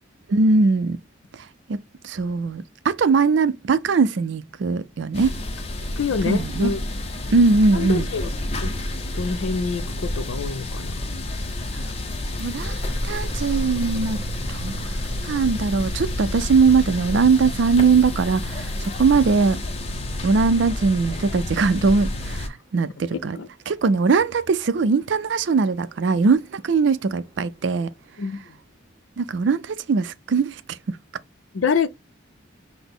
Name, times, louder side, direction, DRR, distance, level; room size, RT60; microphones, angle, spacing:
voice 1, 0.3-1.0 1.7-5.3 6.3-6.7 7.3-8.1 12.4-12.8 13.0-14.2 14.5-14.8 15.2-19.6 20.2-23.4 23.7-27.9 29.2-30.6 30.9-31.0, right 4 dB, 70° right, 0.4 m, -20 dB
sound 1, 5.1-22.5, left 1 dB, 30° left, 0.6 m, -30 dB
voice 2, 6.0-6.8 7.7-8.3 8.6-8.7 9.1-10.9 23.3-23.5 28.2-28.5 31.5-31.9, left 5 dB, 80° left, 0.5 m, -26 dB
sound 2, 12.8-21.3 23.6-28.1, equal, 20° right, 1.4 m, -37 dB
5.8 x 2.0 x 3.5 m
head